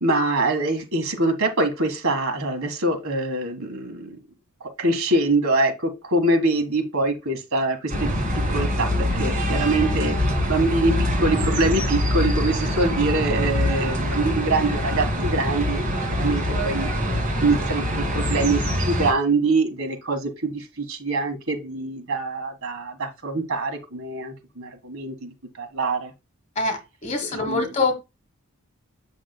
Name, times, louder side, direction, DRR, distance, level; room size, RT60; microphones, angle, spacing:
voice 1, 0.0-4.2 4.6-8.2 8.5-10.2 10.5-16.9 17.4-26.1 27.2-27.7, right 2 dB, 75° right, 1.7 m, -24 dB
sound 1, 7.9-19.1, equal, 35° right, 2.6 m, -24 dB
voice 2, 26.6-27.9, left 3 dB, 35° left, 1.5 m, -24 dB
7.9 x 6.4 x 2.2 m
head